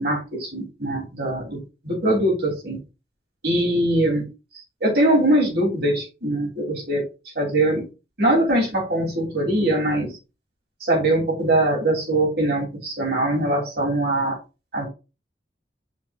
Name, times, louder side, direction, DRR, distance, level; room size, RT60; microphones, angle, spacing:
voice 1, 0.0-2.8 3.4-4.3 4.8-7.0 7.3-7.8 8.2-10.2 10.8-14.4 14.7-14.9, right 1 dB, 60° right, -1 dB, 3.4 m, -22 dB
7.2 x 5.3 x 2.5 m, 0.29 s
head